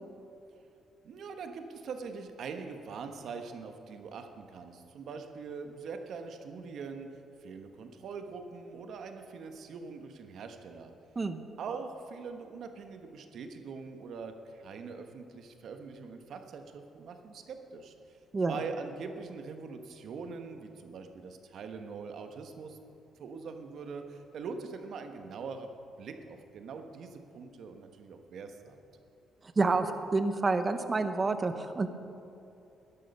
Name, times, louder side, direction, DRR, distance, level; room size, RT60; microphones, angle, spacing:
voice 1, 1.0-10.9 11.6-18.2 18.5-22.8 23.2-25.7 26.0-28.8, right 5 dB, 65° right, 6 dB, 1.2 m, -43 dB
voice 2, 29.6-31.9, right 3 dB, 30° right, 9 dB, 0.9 m, -28 dB
13.0 x 11.0 x 5.5 m, 2.8 s
cardioid pair, 90°, 0 cm